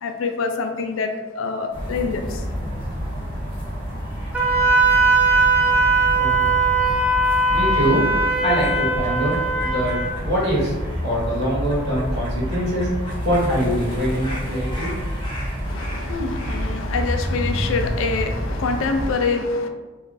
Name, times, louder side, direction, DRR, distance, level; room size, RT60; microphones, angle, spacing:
voice 1, 0.0-2.4 15.6-19.7, left 4 dB, 70° left, 5 dB, 0.4 m, -25 dB
sound 1, 1.7-19.1, equal, 25° left, 0.7 m, -28 dB
Wind instrument woodwind instrument, 4.3-10.1, right 3 dB, 5° right, 0.4 m, -19 dB
voice 2, 6.1-6.4 7.5-14.9, equal, 50° right, -6 dB, 1.1 m, -24 dB
2.5 x 2.4 x 3.8 m, 1.3 s
head